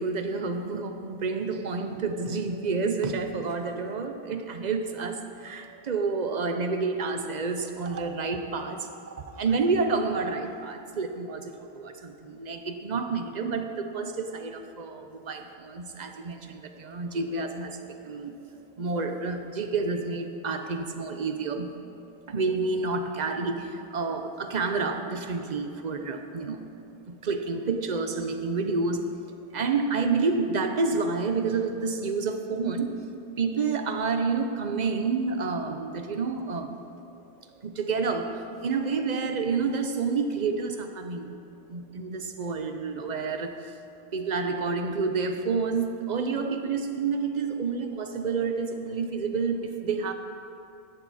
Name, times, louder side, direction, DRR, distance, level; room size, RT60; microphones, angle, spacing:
voice 1, 0.0-18.4 18.8-21.7 22.3-26.7 27.1-29.1 29.5-33.0 33.4-36.7 37.6-41.3 41.7-43.7 44.1-50.1, right 4 dB, 45° right, 6 dB, 0.9 m, -29 dB
16.0 x 12.0 x 4.2 m, 2.7 s
omnidirectional pair, 1.0 m